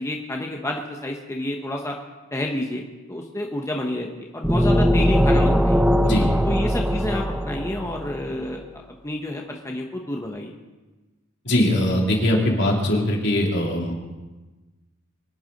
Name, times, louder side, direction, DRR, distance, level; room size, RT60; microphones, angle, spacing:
voice 1, 0.0-2.0 2.3-5.8 6.4-8.6 8.9-10.5, left 1 dB, 15° left, 1 dB, 1.0 m, -29 dB
sound 1, 4.4-8.2, equal, 5° right, 0.6 m, -20 dB
voice 2, 11.4-13.9, left 1 dB, 60° left, -1 dB, 3.2 m, -21 dB
23.0 x 9.6 x 5.3 m, 1.2 s
head